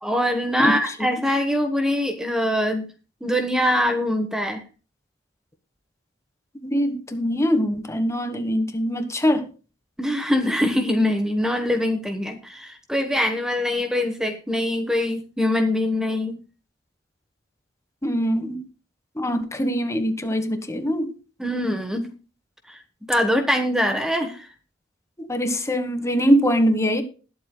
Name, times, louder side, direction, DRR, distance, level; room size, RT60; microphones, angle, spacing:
voice 1, 0.0-2.9 3.2-4.6 10.0-16.4 21.4-22.1 22.7-22.8 23.1-24.5, left 1 dB, 5° right, 5 dB, 1.1 m, -23 dB
voice 2, 6.6-9.5 18.0-18.6 19.2-21.1 25.2-27.0, equal, 15° left, 8 dB, 1.3 m, -22 dB
20.5 x 7.9 x 2.2 m, 0.35 s
head